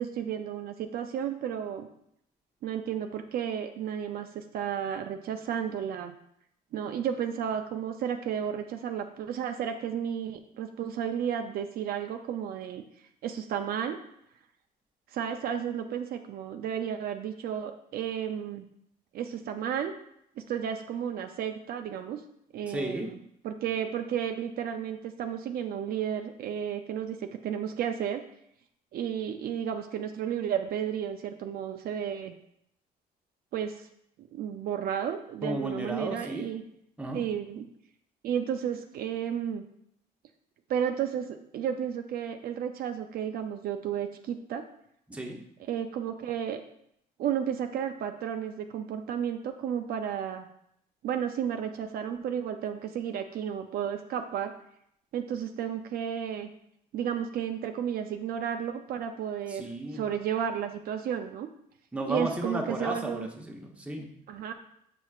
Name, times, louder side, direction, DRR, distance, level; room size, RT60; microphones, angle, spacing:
voice 1, 0.0-1.9 2.6-6.1 6.7-12.8 13.2-14.0 15.1-18.7 19.1-19.9 20.4-22.2 22.5-23.2 23.4-28.2 28.9-32.3 33.5-33.9 34.2-36.6 37.1-37.7 38.2-39.6 40.7-44.6 45.6-46.6 47.2-50.5 51.0-54.5 55.1-56.5 56.9-61.5 62.1-63.3 64.3-64.5, right 8 dB, 65° right, 6 dB, 0.5 m, -32 dB
voice 2, 22.6-23.1 35.4-36.5 37.0-37.2 45.1-45.4 59.5-60.0 61.9-64.1, right 1 dB, 5° right, 1 dB, 1.0 m, -34 dB
6.8 x 6.0 x 2.4 m, 0.74 s
cardioid pair, 110°, 17 cm